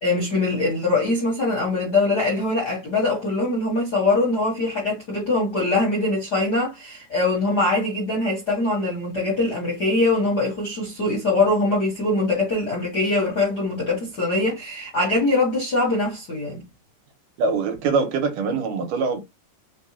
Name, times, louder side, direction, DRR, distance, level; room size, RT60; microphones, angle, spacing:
voice 1, 0.0-16.6, left 2 dB, 50° left, 1.2 m, -22 dB
voice 2, 17.4-19.2, right 4 dB, 75° right, 2.4 m, -23 dB
5.3 x 2.3 x 2.9 m
omnidirectional pair, 3.9 m